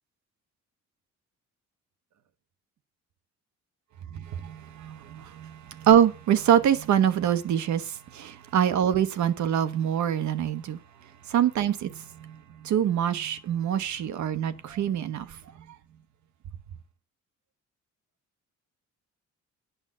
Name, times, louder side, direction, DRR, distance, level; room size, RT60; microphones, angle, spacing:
voice 1, 4.4-5.5 5.8-7.8 8.1-10.8 11.3-11.9 12.6-15.3, right 9 dB, 70° right, 1.0 m, -24 dB
9.0 x 6.1 x 7.5 m
cardioid pair, 90°, 30 cm